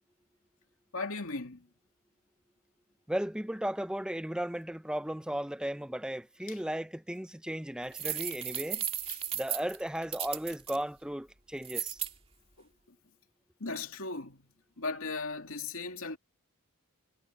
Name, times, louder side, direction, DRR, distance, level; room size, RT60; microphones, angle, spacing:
voice 1, 0.9-1.6 9.1-9.2 13.6-14.4 14.8-16.2, left 3 dB, 65° left, 2.7 m, -37 dB
voice 2, 3.1-8.8 9.3-12.0, right 1 dB, 5° right, 0.6 m, -35 dB
sound 1, 7.9-10.8 11.6-12.1, right 9 dB, 25° right, 2.4 m, -35 dB
head